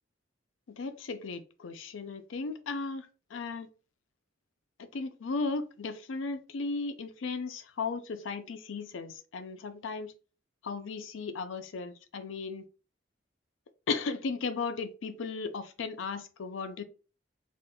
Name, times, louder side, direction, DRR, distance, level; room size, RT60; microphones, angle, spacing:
voice 1, 0.7-3.7 4.8-10.1 10.6-12.6 13.9-16.8, left 4 dB, 75° left, 0.5 m, -36 dB
5.0 x 2.5 x 2.2 m
head